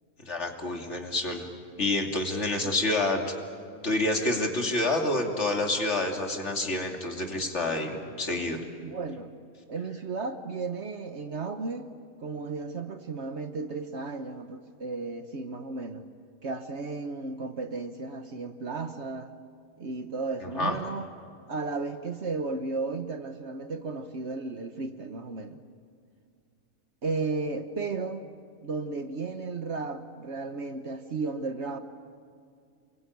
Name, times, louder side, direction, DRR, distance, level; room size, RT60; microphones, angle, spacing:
voice 1, 0.3-1.5 1.8-3.2 3.8-8.6 20.6-20.8, left 2 dB, 55° left, 3 dB, 3.1 m, -28 dB
voice 2, 8.8-9.3 9.7-11.9 12.2-16.1 16.4-19.3 19.8-21.1 21.5-25.6 27.0-28.2 28.6-31.8, right 3 dB, 55° right, 9 dB, 1.3 m, -34 dB
28.0 x 22.0 x 9.4 m, 2.3 s
omnidirectional pair, 1.4 m